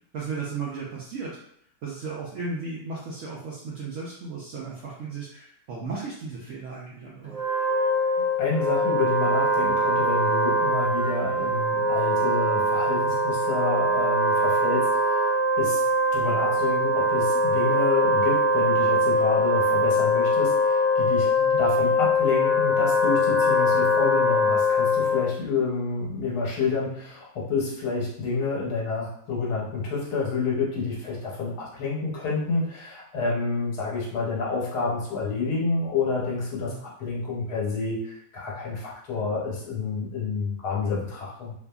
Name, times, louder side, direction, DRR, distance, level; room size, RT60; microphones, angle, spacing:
voice 1, 0.1-1.4 1.8-7.6 21.4-21.6 36.6-36.8, right 4 dB, 75° right, -5 dB, 0.7 m, -35 dB
Wind instrument woodwind instrument, 7.2-25.4, left 1 dB, 10° right, 0.3 m, -22 dB
voice 2, 8.4-15.8 16.1-41.5, left 4 dB, 75° left, -4 dB, 1.3 m, -29 dB
2.7 x 2.5 x 2.2 m, 0.69 s
omnidirectional pair, 1.8 m